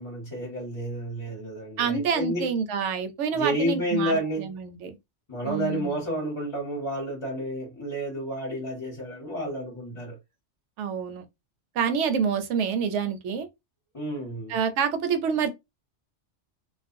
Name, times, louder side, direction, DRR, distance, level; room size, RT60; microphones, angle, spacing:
voice 1, 0.0-2.5 3.3-4.5 5.3-10.2 13.9-14.6, equal, 30° left, 0.9 m, -30 dB
voice 2, 1.8-4.9 5.4-6.0 10.8-11.2 11.8-13.5 14.5-15.5, right 6 dB, 80° right, 0.9 m, -27 dB
2.4 x 2.1 x 2.5 m
omnidirectional pair, 1.2 m